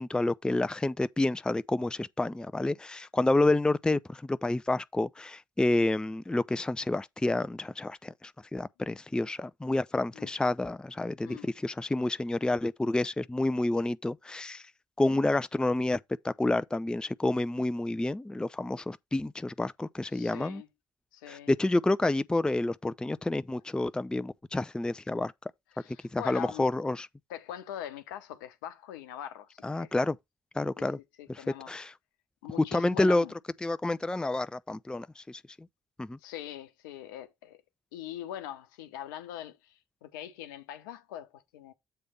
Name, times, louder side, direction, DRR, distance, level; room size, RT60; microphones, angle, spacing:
voice 1, 0.0-14.7 15.0-20.6 21.3-25.3 26.1-27.1 29.6-30.2 30.5-31.0 31.3-31.9 32.7-33.2 33.6-35.7 36.0-36.2, left 2 dB, 5° left, 0.4 m, -29 dB
voice 2, 20.1-20.7 21.1-21.5 25.7-26.6 27.3-29.9 31.2-31.7 32.4-33.3 36.2-37.6 37.9-41.7, left 11 dB, 70° left, 0.8 m, -42 dB
7.9 x 3.3 x 5.4 m
figure-of-eight pair, 45°, 11 cm